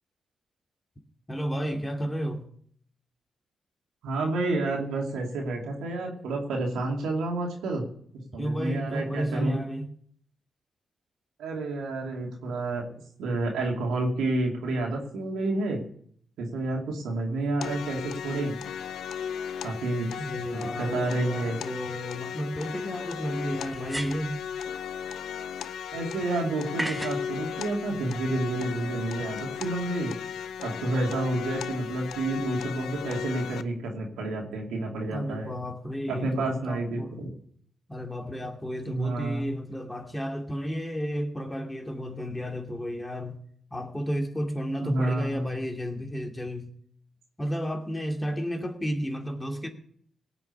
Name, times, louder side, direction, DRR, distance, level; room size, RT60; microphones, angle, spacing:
voice 1, 1.3-2.5 8.4-9.9 20.2-24.4 35.1-37.1 37.9-43.4 43.7-46.7 47.4-49.7, equal, 15° left, 2.6 m, -32 dB
voice 2, 4.0-7.8 8.3-9.5 11.4-12.9 13.2-15.8 16.4-18.5 19.6-20.1 20.5-21.6 25.9-30.1 30.6-35.6 36.1-37.3 38.9-39.5 44.8-45.5, right 2 dB, 90° right, 2.7 m, -29 dB
sound 1, 17.6-33.6, left 8 dB, 85° left, 0.6 m, -36 dB
sound 2, 21.9-22.0 23.7-24.4 26.8-27.3, right 1 dB, 10° right, 0.9 m, -34 dB
17.5 x 6.0 x 8.3 m
supercardioid pair, 55°, 0 cm